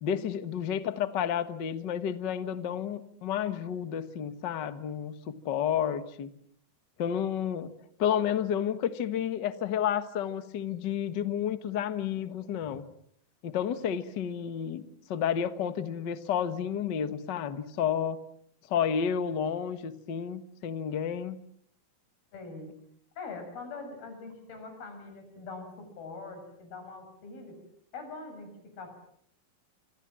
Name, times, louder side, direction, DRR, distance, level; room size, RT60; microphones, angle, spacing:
voice 1, 0.0-6.3 7.0-7.7 8.0-12.8 13.4-18.2 18.7-21.4, left 8 dB, 60° left, 11 dB, 1.1 m, -31 dB
voice 2, 22.3-22.7 23.2-27.6 27.9-29.0, left 3 dB, 85° left, 6 dB, 8.9 m, -43 dB
27.0 x 26.5 x 7.5 m, 0.69 s
omnidirectional pair, 4.2 m